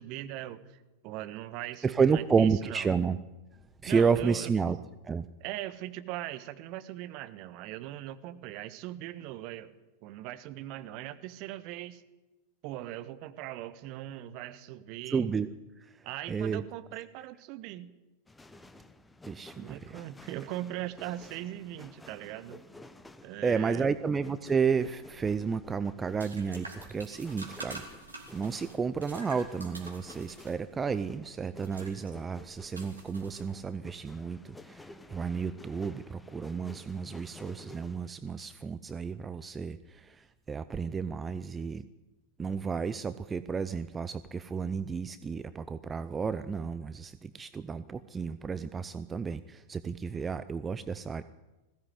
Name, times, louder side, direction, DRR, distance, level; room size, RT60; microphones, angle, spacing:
voice 1, 0.0-2.9 3.8-4.5 5.4-9.7 10.0-12.0 12.6-15.3 16.0-17.9 19.6-22.6 23.2-23.9, right 14 dB, 45° right, 11 dB, 1.4 m, -40 dB
voice 2, 1.8-3.2 3.5-4.8 5.0-5.2 15.1-15.5 15.8-16.6 19.3-20.0 23.4-27.8 28.3-41.8 42.4-51.2, right 5 dB, 15° right, 13 dB, 0.7 m, -31 dB
sound 1, 18.3-38.1, left 2 dB, 10° left, 1.1 m, -52 dB
sound 2, 25.4-33.9, right 2 dB, 80° right, 4.2 m, -48 dB
20.5 x 16.0 x 9.6 m, 1.1 s
figure-of-eight pair, 90°, 0 cm